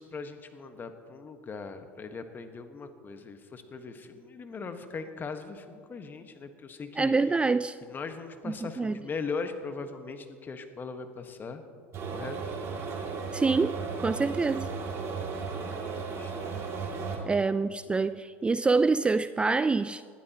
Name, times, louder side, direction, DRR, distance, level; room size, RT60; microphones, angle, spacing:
voice 1, 0.0-7.1 7.8-11.6 12.1-12.4 15.6-16.7 17.2-17.3, left 4 dB, 30° left, 1.4 m, -40 dB
voice 2, 7.0-7.8 8.5-9.0 13.3-14.7 17.3-20.0, right 4 dB, 15° right, 0.3 m, -26 dB
sound 1, 11.9-17.2, right 5 dB, 45° right, 2.5 m, -35 dB
20.0 x 13.0 x 2.9 m
hypercardioid pair, 75°, 6 cm